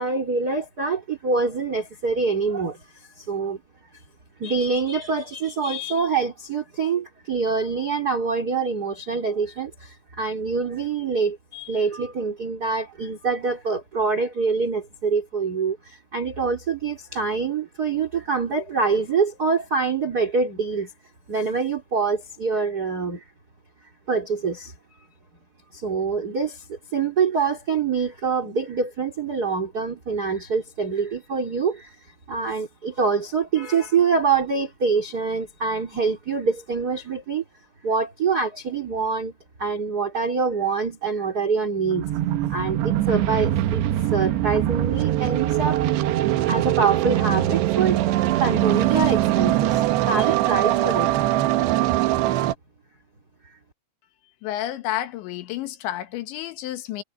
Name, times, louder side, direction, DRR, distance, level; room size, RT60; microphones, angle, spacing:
voice 1, 0.0-3.6 4.4-20.9 21.3-23.2 24.1-24.7 25.7-32.0 32.3-37.4 37.8-39.3 39.6-42.1 42.5-43.8 44.1-45.8 46.5-48.0 48.4-51.2 53.4-53.6, right 5 dB, 20° right, 3.6 m, -25 dB
sound 1, 41.8-52.5, right 14 dB, 80° right, 3.1 m, -22 dB
voice 2, 54.4-57.0, left 13 dB, 85° left, 3.8 m, -30 dB
omnidirectional pair, 5.1 m